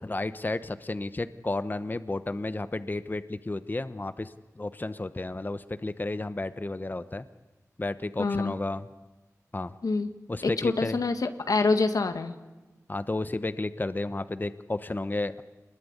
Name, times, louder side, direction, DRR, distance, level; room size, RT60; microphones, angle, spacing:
voice 1, 0.0-7.2 7.8-8.9 9.5-9.7 10.3-11.0 12.9-15.4, left 2 dB, 30° left, 11 dB, 1.0 m, -32 dB
voice 2, 8.2-8.6 9.8-10.1 10.4-12.3, left 3 dB, 85° left, 8 dB, 1.7 m, -26 dB
26.0 x 21.0 x 9.8 m, 1.2 s
wide cardioid pair, 50°, 6 cm